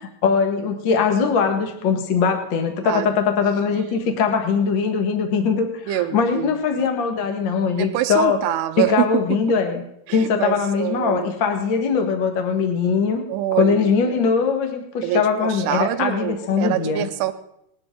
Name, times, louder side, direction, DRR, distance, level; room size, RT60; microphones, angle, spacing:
voice 1, 0.0-8.4 8.8-9.8 10.1-13.2 13.6-17.1, left 5 dB, 80° left, 5 dB, 1.0 m, -21 dB
voice 2, 5.9-6.5 7.8-9.6 10.1-11.3 13.3-14.1 15.0-17.3, right 13 dB, 85° right, 11 dB, 2.7 m, -25 dB
19.5 x 12.0 x 3.7 m, 0.78 s
omnidirectional pair, 4.7 m